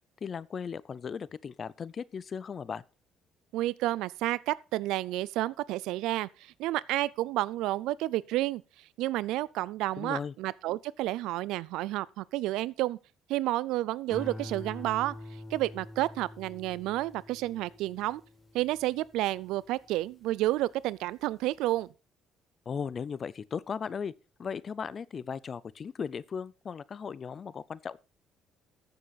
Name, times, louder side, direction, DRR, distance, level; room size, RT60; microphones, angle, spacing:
voice 1, 0.2-2.8 10.0-10.3 22.7-24.1 24.4-28.0, left 6 dB, 40° left, 0.5 m, -37 dB
voice 2, 3.5-8.6 9.0-13.0 13.3-15.1 15.5-18.2 18.5-21.9, right 16 dB, 85° right, 0.4 m, -30 dB
sound 1, 14.1-20.6 21.1-21.6, left 1 dB, 20° left, 2.4 m, -46 dB
14.0 x 6.9 x 4.1 m
cardioid pair, 90°, 0 cm